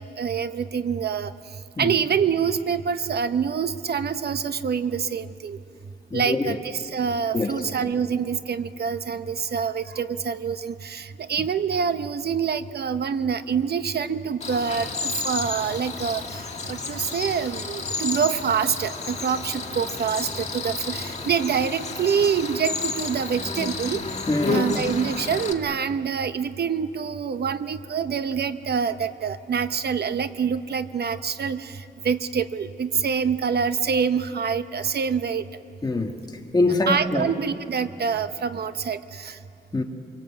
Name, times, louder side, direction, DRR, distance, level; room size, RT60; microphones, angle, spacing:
voice 1, 0.0-1.3 1.8-5.6 6.1-16.4 16.7-24.1 24.5-35.4 36.9-39.4, right 6 dB, 60° right, 11 dB, 0.8 m, -26 dB
voice 2, 6.1-6.6 7.3-7.6 24.3-24.6 35.8-36.1 36.5-37.3 39.7-39.8, left 2 dB, 20° left, 3 dB, 1.7 m, -23 dB
Cricket, 14.4-25.5, left 3 dB, 35° left, 1.7 m, -31 dB
25.5 x 23.5 x 8.6 m, 2.7 s
wide cardioid pair, 155°, 18 cm